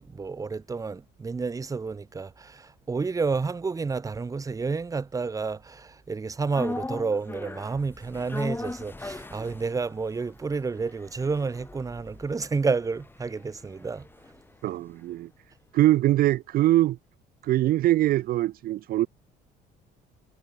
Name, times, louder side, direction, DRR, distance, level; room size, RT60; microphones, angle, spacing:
voice 1, 0.0-14.1, right 4 dB, 20° right, 0.9 m, -30 dB
sound 1, 6.5-14.8 15.1-15.2, left 2 dB, 10° left, 2.4 m, -39 dB
voice 2, 14.6-15.3 15.7-17.0 17.4-19.1, right 15 dB, 60° right, 0.5 m, -22 dB
cardioid pair, 110°, 17 cm